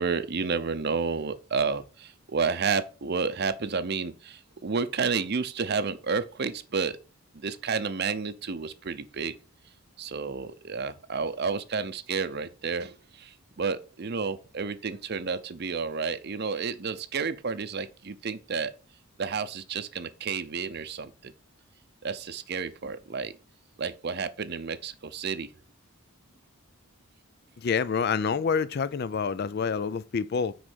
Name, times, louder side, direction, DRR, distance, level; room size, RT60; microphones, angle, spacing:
voice 1, 0.0-7.0 7.4-9.3 10.0-18.7 19.2-21.3 22.0-23.3 23.8-25.5, right 5 dB, 50° right, 0.6 m, -31 dB
voice 2, 27.6-30.5, left 6 dB, 45° left, 0.4 m, -27 dB
6.3 x 5.0 x 6.1 m
head